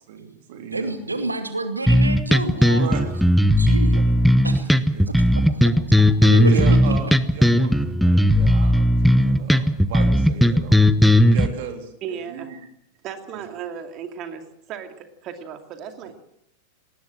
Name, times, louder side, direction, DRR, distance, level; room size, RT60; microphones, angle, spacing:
voice 1, 0.1-1.3 2.7-3.3 4.0-4.1 4.6-5.6 6.5-10.9 11.3-12.6 16.0-16.1, right 7 dB, 50° right, 5 dB, 3.5 m, -36 dB
voice 2, 0.7-2.9 3.6-4.2 4.4-4.7 5.1-5.4 6.0-6.8, right 2 dB, 80° right, 7 dB, 2.5 m, -28 dB
sound 1, 1.9-11.5, equal, ahead, 1.0 m, -16 dB
voice 3, 12.0-12.5 13.0-16.1, right 7 dB, 35° right, 6 dB, 2.6 m, -35 dB
20.0 x 19.5 x 7.6 m, 0.73 s
figure-of-eight pair, 90°, 0 cm